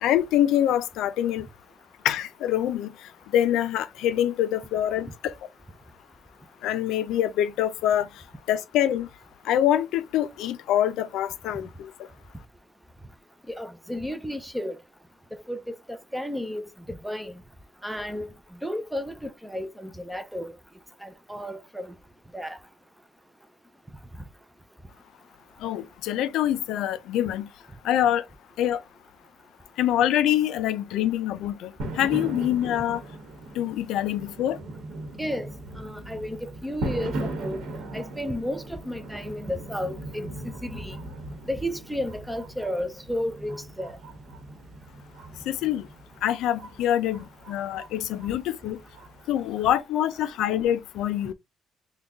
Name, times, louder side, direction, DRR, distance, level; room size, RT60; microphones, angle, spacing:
voice 1, 0.0-1.5 2.0-2.9 3.3-5.3 6.6-8.1 8.5-9.1 9.5-11.9 25.6-27.5 27.8-28.2 28.6-28.8 29.8-31.7 32.0-33.0 33.6-34.6 45.5-45.9 46.2-48.8 49.3-51.3, left 11 dB, 85° left, 0.4 m, -25 dB
voice 2, 13.5-14.8 15.5-17.3 17.8-18.3 18.6-20.5 21.0-21.9 22.3-22.6 35.2-35.5 35.8-37.6 37.9-40.3 40.6-41.0 41.5-44.0, equal, ahead, 0.4 m, -33 dB
sound 1, 31.8-49.8, right 1 dB, 90° right, 1.1 m, -39 dB
3.8 x 2.2 x 3.5 m
cardioid pair, 150°, 0 cm